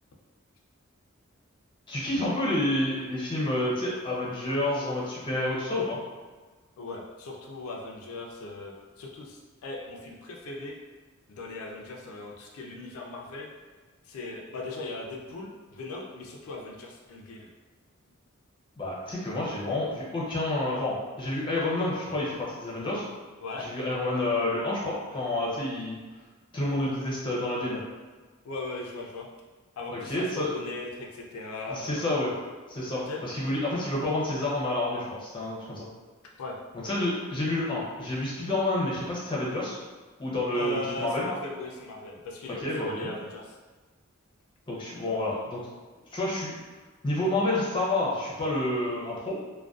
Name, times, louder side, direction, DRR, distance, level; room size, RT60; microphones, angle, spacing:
voice 1, 1.9-6.0 18.8-23.0 23.6-26.0 26.5-27.8 29.9-30.5 31.7-32.3 32.7-35.9 36.8-39.8 40.2-41.3 42.6-43.1 44.7-45.6 46.1-46.5 47.0-49.5, left 1 dB, 25° left, -6 dB, 0.5 m, -29 dB
voice 2, 6.8-10.8 11.3-13.5 14.0-17.5 23.4-23.7 28.4-29.3 29.8-31.9 33.1-33.2 36.4-36.6 40.5-42.6 42.9-43.6, left 3 dB, 80° left, -1 dB, 0.4 m, -38 dB
2.5 x 2.2 x 2.3 m, 1.4 s
head